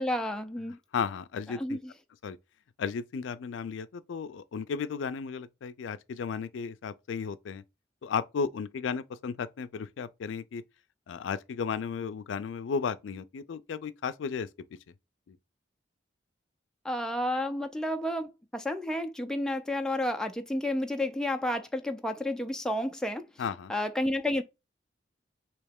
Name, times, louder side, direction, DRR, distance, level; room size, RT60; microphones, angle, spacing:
voice 1, 0.0-0.8 1.5-1.9 16.8-23.3 23.7-24.4, left 1 dB, 5° left, 0.3 m, -31 dB
voice 2, 0.9-1.8 2.2-2.4 2.8-7.6 8.0-10.6 11.1-14.5 15.3-15.4 23.4-23.7, left 6 dB, 80° left, 0.4 m, -34 dB
3.2 x 2.8 x 3.5 m
head